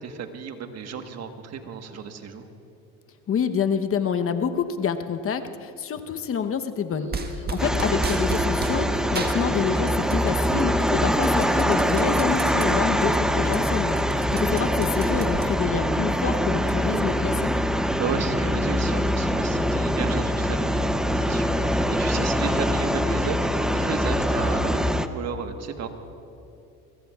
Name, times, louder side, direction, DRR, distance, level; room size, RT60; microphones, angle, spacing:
voice 1, 0.0-2.5 7.4-7.5 14.1-14.3 18.0-23.4 23.7-25.9, right 6 dB, 50° right, 6 dB, 1.4 m, -33 dB
voice 2, 3.3-17.5, left 7 dB, 40° left, 8 dB, 1.0 m, -27 dB
sound 1, 6.9-13.4, right 2 dB, 75° right, 1.8 m, -36 dB
sound 2, 7.1-8.8 9.1-10.3 10.6-12.7 13.1-13.2 13.4-15.8, right 4 dB, 30° right, 1.5 m, -34 dB
sound 3, 7.6-25.1, equal, ahead, 0.6 m, -23 dB
22.5 x 22.0 x 2.4 m, 2.8 s
supercardioid pair, 80°, 34 cm